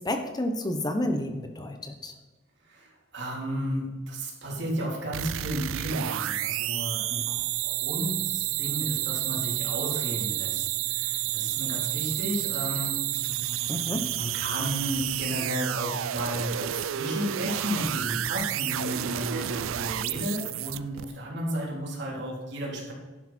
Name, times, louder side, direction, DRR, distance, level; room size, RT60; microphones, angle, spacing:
voice 1, 0.0-2.1 13.7-14.0, left 1 dB, 20° left, 6 dB, 0.9 m, -30 dB
voice 2, 2.7-7.4 7.7-13.0 13.8-22.9, equal, 60° right, -2 dB, 3.5 m, -33 dB
sound 1, 5.1-21.0, right 13 dB, 90° right, 0.4 m, -30 dB
11.0 x 10.5 x 4.3 m, 1.2 s
head